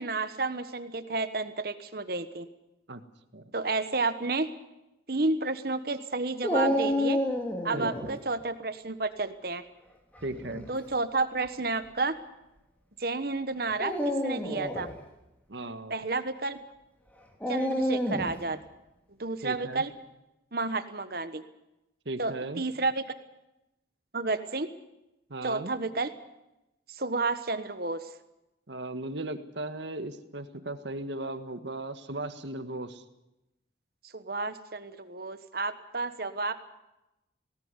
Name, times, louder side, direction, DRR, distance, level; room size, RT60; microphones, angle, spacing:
voice 1, 0.0-2.5 3.5-4.5 5.1-7.2 7.6-9.6 10.7-12.2 13.0-14.9 15.9-16.6 17.5-18.6 19.2-19.9 20.5-21.4 22.2-23.0 24.1-24.7 25.4-26.1 26.9-28.1 34.1-36.5, right 3 dB, 50° right, 10 dB, 1.3 m, -31 dB
Dog, 6.4-8.1 10.2-10.7 11.5-11.6 13.7-14.9 17.4-18.4, equal, 10° left, 2.9 m, -29 dB
voice 2, 7.7-8.2 10.2-10.7 15.5-16.0 19.4-19.8 22.0-22.6 25.3-25.7 28.7-33.0, right 2 dB, 70° right, 9 dB, 1.6 m, -37 dB
19.5 x 18.0 x 9.8 m, 0.93 s
head